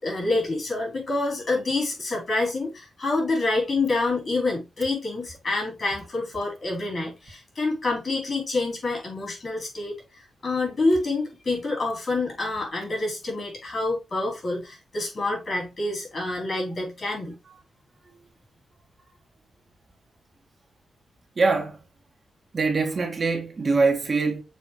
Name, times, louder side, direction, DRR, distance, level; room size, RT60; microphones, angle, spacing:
voice 1, 0.0-17.3, left 2 dB, 40° left, 4.3 m, -27 dB
voice 2, 21.4-21.8 22.5-24.4, right 4 dB, 35° right, 1.4 m, -23 dB
6.9 x 4.4 x 3.3 m
wide cardioid pair, 145°, 0 cm